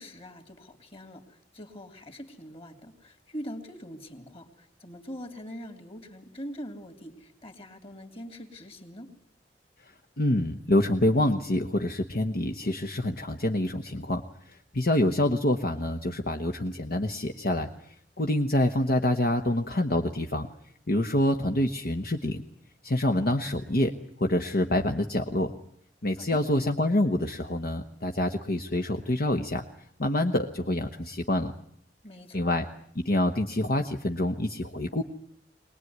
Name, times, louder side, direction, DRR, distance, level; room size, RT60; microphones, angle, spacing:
voice 1, 0.0-9.1 26.2-26.4 32.0-32.6, equal, 35° left, 7 dB, 3.0 m, -43 dB
voice 2, 10.2-14.2 14.5-20.5 20.9-22.4 22.8-23.9 24.2-25.5 26.0-29.6 30.0-31.5 32.3-32.6 32.9-35.0, left 1 dB, 60° left, 4 dB, 1.3 m, -26 dB
23.0 x 20.0 x 9.5 m, 0.68 s
head